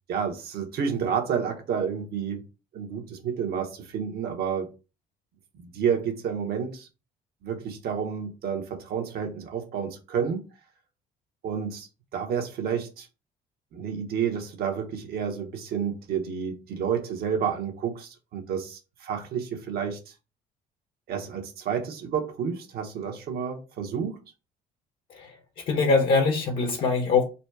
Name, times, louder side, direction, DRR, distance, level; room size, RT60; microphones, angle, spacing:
voice 1, 0.1-2.4 2.7-4.7 5.5-6.9 7.4-10.4 11.4-13.1 13.7-20.1 21.1-24.2, right 7 dB, 65° right, 1.2 m, -30 dB
voice 2, 25.7-27.2, left 4 dB, 60° left, 1.0 m, -22 dB
4.1 x 2.3 x 4.6 m
cardioid pair, 110°, 17 cm